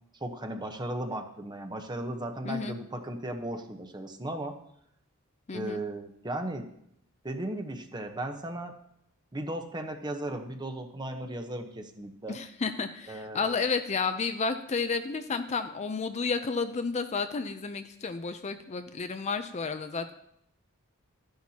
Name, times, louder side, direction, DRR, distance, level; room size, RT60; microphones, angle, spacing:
voice 1, 0.2-4.5 5.5-6.7 7.2-8.7 9.3-12.4 13.1-13.6, right 1 dB, 20° right, 5 dB, 0.9 m, -36 dB
voice 2, 2.4-2.8 5.5-5.8 12.3-20.1, left 4 dB, 30° left, 8 dB, 0.5 m, -31 dB
13.5 x 10.5 x 2.8 m, 0.74 s
head